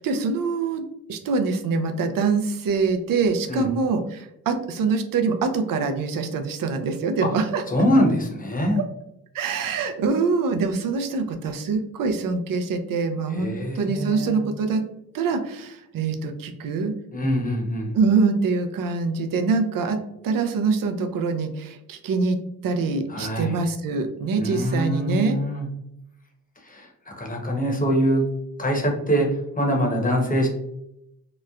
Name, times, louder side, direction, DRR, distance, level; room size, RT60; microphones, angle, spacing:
voice 1, 0.0-7.6 9.3-14.8 15.1-16.9 17.9-20.0 20.2-22.4 22.6-25.4, right 4 dB, 60° right, 7 dB, 0.6 m, -24 dB
voice 2, 7.7-8.8 13.3-14.4 17.1-18.0 23.1-23.6 24.4-25.6 26.6-28.2 28.6-30.5, equal, 20° left, 0 dB, 0.9 m, -24 dB
3.0 x 2.0 x 2.4 m, 0.80 s
supercardioid pair, 55°, 39 cm